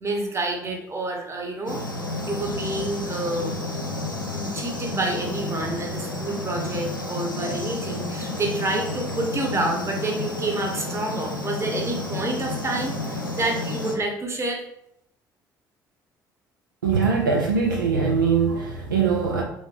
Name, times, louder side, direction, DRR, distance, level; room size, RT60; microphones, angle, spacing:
voice 1, 0.0-1.8 2.2-3.5 4.3-14.6, right 2 dB, 25° right, 1 dB, 0.9 m, -28 dB
sound 1, 1.7-14.0, left 2 dB, 90° left, 0.4 m, -31 dB
voice 2, 16.8-19.4, right 5 dB, 80° right, 0 dB, 0.4 m, -22 dB
3.6 x 2.6 x 3.3 m, 0.76 s
figure-of-eight pair, 50°, 11 cm